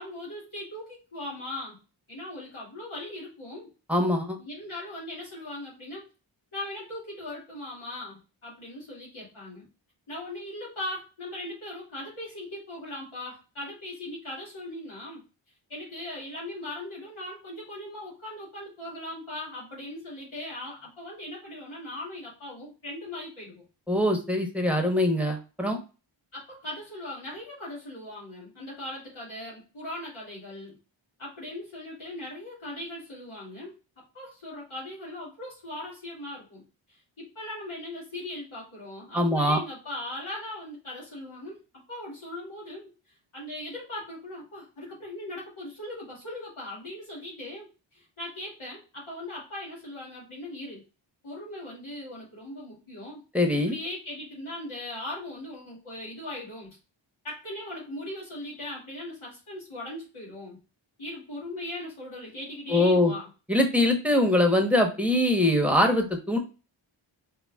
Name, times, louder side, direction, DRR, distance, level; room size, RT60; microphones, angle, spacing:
voice 1, 0.0-1.8 2.1-3.7 4.4-6.1 6.5-9.7 10.1-15.2 15.7-23.6 26.3-30.8 31.2-33.7 34.1-36.6 36.9-50.8 51.2-53.2 53.7-56.7 57.2-60.6 61.0-63.3, left 1 dB, 85° left, -6 dB, 2.2 m, -39 dB
voice 2, 3.9-4.4 23.9-25.8 39.1-39.6 53.3-53.7 62.7-63.1 63.5-66.4, left 1 dB, 5° right, 3 dB, 1.0 m, -23 dB
4.7 x 3.4 x 2.3 m, 0.33 s
wide cardioid pair, 50°, 48 cm